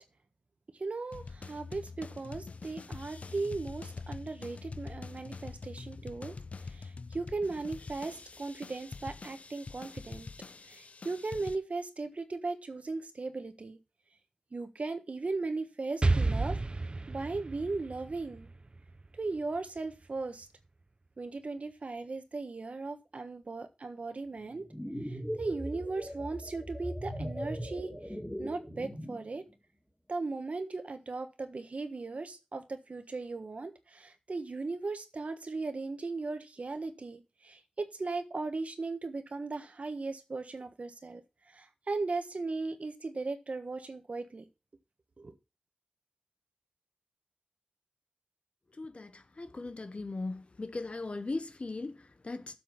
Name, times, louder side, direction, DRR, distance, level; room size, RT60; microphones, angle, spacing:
voice 1, 0.8-6.4 6.6-10.3 10.7-13.8 14.5-16.6 17.1-18.5 19.1-20.5 21.2-24.7 25.0-27.9 28.4-29.4 30.1-41.2 41.5-44.4 45.2-45.3, right 3 dB, 75° right, 1.4 m, -37 dB
sound 1, 1.1-11.6, left 4 dB, 80° left, 0.6 m, -45 dB
Explosion, 16.0-19.8, right 2 dB, 45° right, 0.5 m, -32 dB
sound 2, 24.5-29.3, equal, 5° left, 2.8 m, -39 dB
voice 2, 48.7-52.6, left 3 dB, 60° left, 1.1 m, -39 dB
7.8 x 6.1 x 7.0 m
wide cardioid pair, 55°, 2 cm